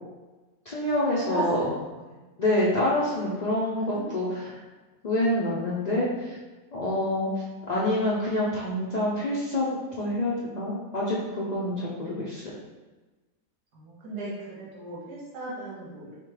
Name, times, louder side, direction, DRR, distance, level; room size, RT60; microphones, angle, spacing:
voice 1, 0.7-1.6 2.4-4.5 5.0-6.1 6.7-7.3 7.7-12.4, left 1 dB, 80° left, -7 dB, 0.3 m, -27 dB
voice 2, 1.3-2.2 3.7-4.5 13.7-16.2, right 2 dB, 85° right, -6 dB, 1.4 m, -37 dB
3.6 x 3.2 x 3.1 m, 1.2 s
omnidirectional pair, 1.6 m